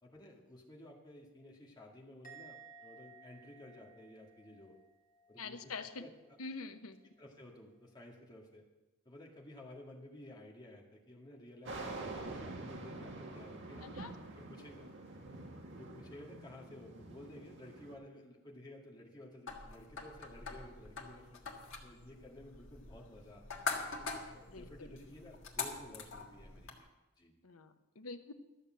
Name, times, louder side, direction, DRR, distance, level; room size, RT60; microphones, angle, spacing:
voice 1, 0.0-4.7 5.3-5.6 5.9-6.4 7.2-8.7 9.1-13.9 14.4-14.9 15.4-21.4 21.8-23.7 24.3-26.9 27.2-27.4, left 1 dB, 20° left, -2 dB, 2.0 m, -54 dB
Musical instrument, 2.2-5.6 5.9-6.3, right 4 dB, 40° left, 1.7 m, -57 dB
voice 2, 5.4-6.0 6.4-7.0 13.8-14.1 24.5-25.0 27.4-28.3, left 4 dB, 90° left, 9 dB, 0.9 m, -45 dB
sound 1, 11.7-17.9, right 2 dB, 60° right, 1.7 m, -46 dB
sound 2, 19.5-26.8, left 4 dB, 65° left, 1.7 m, -44 dB
13.0 x 6.9 x 7.5 m, 1.0 s
head